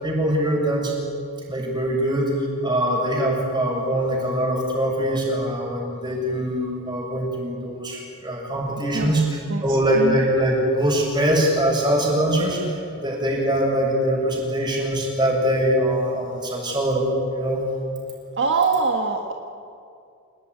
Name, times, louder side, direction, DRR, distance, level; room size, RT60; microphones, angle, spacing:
voice 1, 0.0-0.9 1.5-2.3 2.6-17.6, right 1 dB, 20° right, -1 dB, 7.3 m, -23 dB
voice 2, 18.4-19.3, right 4 dB, 55° right, 2 dB, 1.6 m, -22 dB
27.5 x 19.0 x 9.9 m, 2.5 s
head